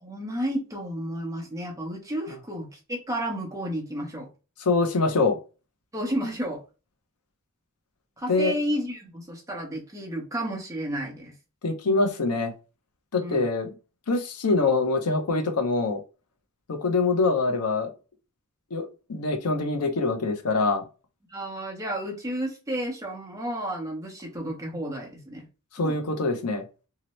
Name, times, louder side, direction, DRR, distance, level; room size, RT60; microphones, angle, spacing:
voice 1, 0.0-4.3 5.9-6.6 8.2-11.3 13.2-13.4 21.3-25.5 25.8-26.0, equal, 15° right, 0.7 m, -32 dB
voice 2, 4.6-5.4 8.3-8.5 11.6-12.5 13.1-13.7 14.1-16.0 16.7-17.9 18.7-20.8 25.7-26.6, left 3 dB, 85° left, 0.6 m, -24 dB
2.8 x 2.0 x 3.0 m
head